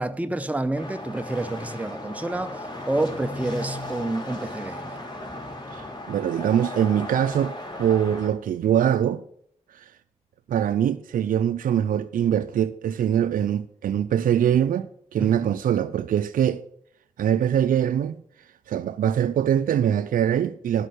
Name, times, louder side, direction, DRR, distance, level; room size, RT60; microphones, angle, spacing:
voice 1, 0.0-5.0 15.2-15.4, right 2 dB, 10° right, 0.7 m, -29 dB
sound 1, 0.7-8.3, left 1 dB, 30° left, 3.7 m, -36 dB
voice 2, 5.7-9.2 9.7-9.8 10.5-16.6 17.2-18.1 18.7-20.9, right 9 dB, 85° right, 0.4 m, -23 dB
11.5 x 5.4 x 6.5 m
cardioid pair, 45°, 14 cm